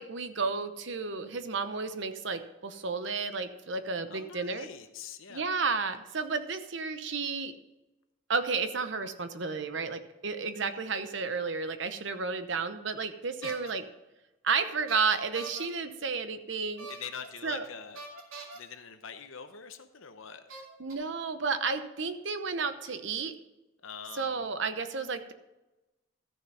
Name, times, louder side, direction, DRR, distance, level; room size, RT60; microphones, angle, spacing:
voice 1, 0.0-4.7 5.3-7.5 8.3-13.8 14.4-16.9 17.4-17.7 20.8-23.3 24.2-25.3, right 4 dB, 60° right, 9 dB, 0.9 m, -32 dB
voice 2, 4.1-5.4 13.4-13.6 16.9-18.0 18.5-20.5 23.8-24.5, left 7 dB, 75° left, 8 dB, 0.9 m, -44 dB
sound 1, 13.4-13.7 14.9-15.6 16.8-17.3 17.9-18.6 19.6-19.7 20.5-20.9, right 2 dB, 85° right, 2.7 m, -43 dB
13.5 x 6.7 x 5.5 m, 1.0 s
head